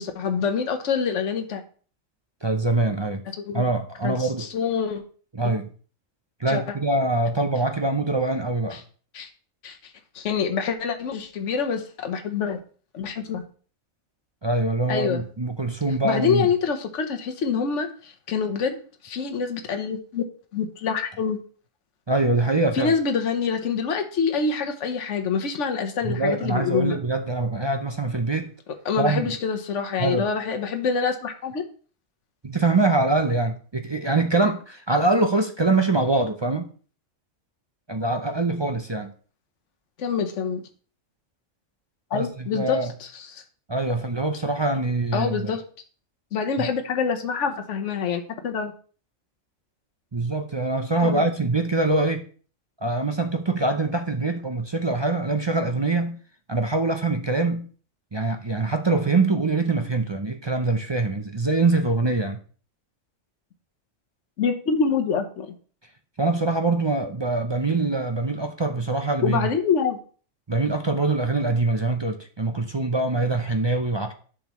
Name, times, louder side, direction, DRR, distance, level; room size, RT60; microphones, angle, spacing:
voice 1, 0.0-1.6 3.4-3.6 4.0-5.0 6.5-6.6 8.7-8.8 9.1-9.3 9.6-12.6 12.9-13.4 14.9-15.2 16.0-20.2 20.5-21.4 22.7-27.0 28.8-31.6 40.0-40.6 42.1-43.4 45.1-45.6 46.3-48.7 51.0-51.2 64.4-65.5 69.2-70.0, left 6 dB, 70° left, 1.3 m, -26 dB
voice 2, 2.4-3.2 3.5-4.5 5.3-5.7 6.4-8.8 14.4-16.5 22.1-22.9 26.0-28.5 29.0-29.3 30.0-30.3 32.4-36.7 37.9-39.1 42.1-42.3 42.5-42.9 43.7-45.5 46.6-46.7 50.1-52.3 52.8-56.2 56.5-57.7 58.1-62.4 66.2-69.5 70.5-74.1, right 2 dB, 35° right, 0.5 m, -24 dB
10.5 x 6.3 x 3.1 m
omnidirectional pair, 1.3 m